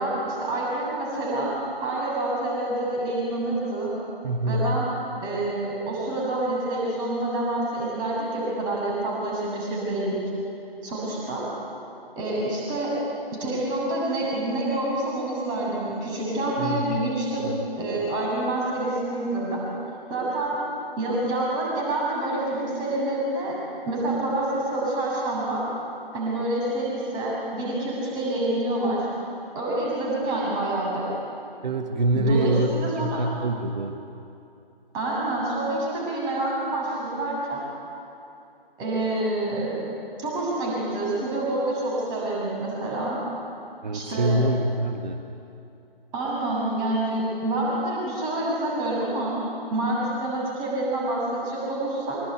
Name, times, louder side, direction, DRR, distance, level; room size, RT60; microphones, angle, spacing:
voice 1, 0.0-1.5 1.8-3.9 4.5-4.9 5.2-10.2 10.8-11.4 12.2-13.0 13.4-17.5 17.8-19.6 20.1-20.6 21.0-23.6 23.9-25.6 26.1-29.1 29.5-31.1 32.1-33.2 34.9-37.6 38.8-39.8 40.2-43.2 43.9-44.4 46.1-49.3 49.7-52.2, right 1 dB, 15° right, -4 dB, 7.2 m, -27 dB
voice 2, 4.2-4.6 16.6-16.9 17.4-17.5 31.6-32.7 33.0-34.0 43.8-45.2, right 2 dB, 50° right, 5 dB, 1.6 m, -25 dB
25.5 x 24.0 x 9.3 m, 2.7 s
figure-of-eight pair, 145°, 29 cm